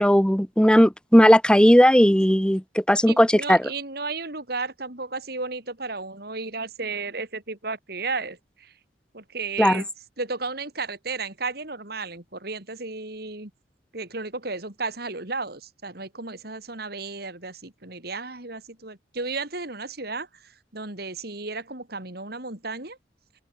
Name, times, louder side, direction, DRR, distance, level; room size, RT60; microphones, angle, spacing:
voice 1, 0.0-2.6 2.9-3.6 9.6-9.8, equal, 5° left, 1.8 m, -16 dB
voice 2, 3.1-8.7 9.1-9.9 10.2-13.5 13.9-23.0, right 3 dB, 55° right, 3.4 m, -33 dB
open air
head